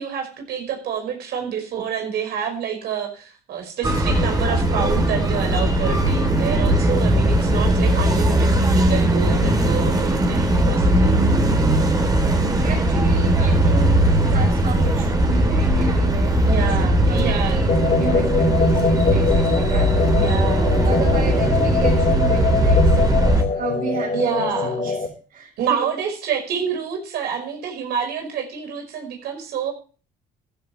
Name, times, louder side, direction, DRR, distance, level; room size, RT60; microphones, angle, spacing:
voice 1, 0.0-11.4 16.5-17.6 20.2-20.8 24.1-24.7 25.6-29.7, right 7 dB, 75° right, 4 dB, 5.4 m, -27 dB
sound 1, 3.8-23.4, right 1 dB, 25° right, 3.4 m, -19 dB
voice 2, 12.6-19.9 20.8-24.9 25.3-25.9, right 4 dB, 50° right, -5 dB, 6.9 m, -32 dB
sound 2, 17.7-25.1, left 4 dB, 45° left, 5.1 m, -22 dB
14.5 x 13.0 x 3.3 m, 0.38 s
cardioid pair, 110°, 17 cm